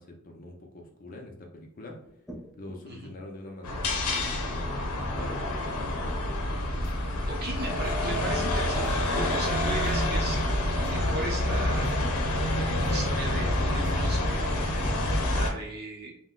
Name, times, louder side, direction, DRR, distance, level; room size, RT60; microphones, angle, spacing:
voice 1, 0.0-2.0 2.6-5.9, left 1 dB, 40° left, 1 dB, 0.5 m, -44 dB
sound 1, 2.0-2.9 3.4-3.6 4.1-4.5 4.9-5.4 6.1-6.9, equal, ahead, 0.7 m, -47 dB
sound 2, 3.6-15.5, left 1 dB, 85° left, 0.7 m, -27 dB
sound 3, 6.3-14.3, equal, 55° left, 0.9 m, -42 dB
voice 2, 7.3-8.9 9.1-10.4 10.8-12.1 12.6-14.6 15.3-16.1, right 2 dB, 45° right, -1 dB, 0.7 m, -37 dB
2.6 x 2.1 x 3.6 m, 0.76 s
head